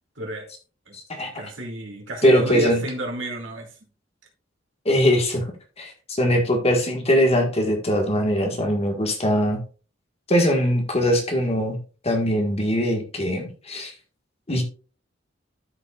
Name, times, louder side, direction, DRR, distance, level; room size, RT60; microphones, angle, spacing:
voice 1, 0.2-0.5 0.9-3.7, right 1 dB, 85° right, 1 dB, 2.6 m, -31 dB
voice 2, 1.1-1.5 2.2-2.8 4.8-5.5 5.8-5.9 6.2-9.6 10.3-11.8 12.0-13.9 14.5-14.6, equal, 35° left, 3 dB, 1.6 m, -21 dB
13.0 x 5.3 x 2.4 m, 0.36 s
head